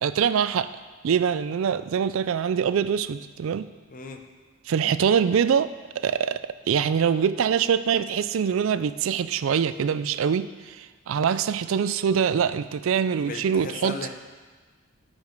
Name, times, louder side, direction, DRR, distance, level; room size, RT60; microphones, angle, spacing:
voice 1, 0.0-0.7 1.0-3.7 4.7-13.9, right 7 dB, 70° right, 14 dB, 0.3 m, -24 dB
voice 2, 13.1-14.1, left 3 dB, 40° left, 5 dB, 0.8 m, -36 dB
13.0 x 5.2 x 5.2 m, 1.4 s
head